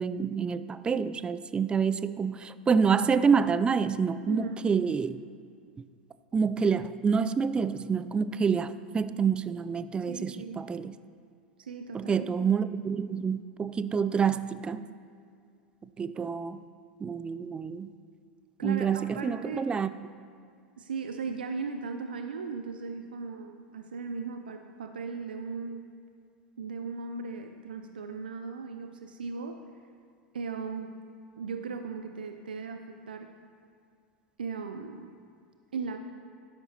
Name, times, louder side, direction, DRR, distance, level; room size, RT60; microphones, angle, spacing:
voice 1, 0.0-5.2 6.3-11.0 11.9-14.8 16.0-16.6 17.0-17.9 18.6-19.9, right 6 dB, 20° right, 14 dB, 0.4 m, -27 dB
voice 2, 4.3-4.6 10.0-10.6 11.6-12.1 18.6-19.7 20.8-25.9 26.6-29.6 30.3-31.0 31.4-33.3 34.4-35.1 35.7-36.0, right 5 dB, 75° right, 6 dB, 0.5 m, -37 dB
12.0 x 11.0 x 2.9 m, 2.3 s
figure-of-eight pair, 85°, 5 cm